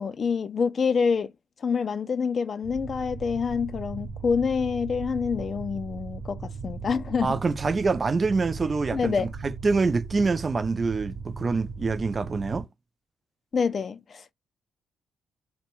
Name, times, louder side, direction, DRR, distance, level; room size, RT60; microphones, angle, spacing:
voice 1, 0.0-1.3 1.6-7.4 8.9-9.3 13.5-14.2, left 5 dB, 45° left, 0.3 m, -27 dB
sound 1, 2.6-12.6, right 5 dB, 65° right, 0.7 m, -38 dB
voice 2, 7.2-12.7, right 4 dB, 30° right, 0.4 m, -26 dB
2.6 x 2.1 x 3.0 m
cardioid pair, 90°, 0 cm